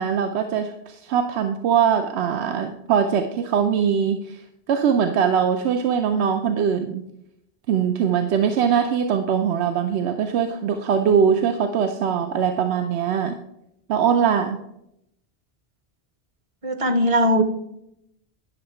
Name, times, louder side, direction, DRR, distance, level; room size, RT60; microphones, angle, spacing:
voice 1, 0.0-4.4 4.7-7.1 7.7-13.4 13.9-14.6, right 7 dB, 80° right, 7 dB, 0.9 m, -21 dB
voice 2, 16.6-17.4, equal, 35° right, 8 dB, 0.7 m, -19 dB
10.5 x 6.3 x 4.3 m, 0.81 s
omnidirectional pair, 1.1 m